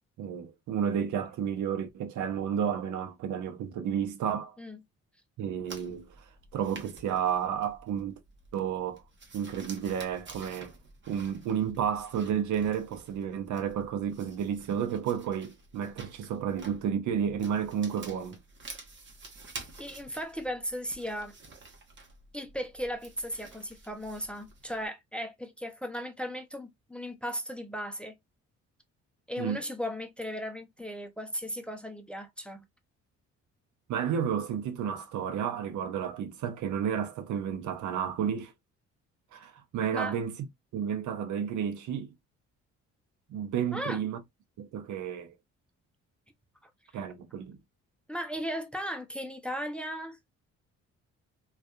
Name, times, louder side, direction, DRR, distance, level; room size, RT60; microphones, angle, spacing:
voice 1, 0.2-4.6 5.4-8.1 8.5-9.0 9.3-10.7 11.1-18.4 29.4-29.6 33.9-38.5 39.3-40.4 40.7-42.1 43.3-44.2 44.6-45.3 46.9-47.6, right 8 dB, 75° right, 0.7 m, -31 dB
sound 1, 5.7-24.9, right 3 dB, 40° right, 1.0 m, -50 dB
voice 2, 19.8-21.3 22.3-28.2 29.3-32.6 39.9-40.2 43.7-44.0 48.1-50.2, equal, 5° left, 0.5 m, -36 dB
2.6 x 2.4 x 2.3 m
cardioid pair, 90°, 30 cm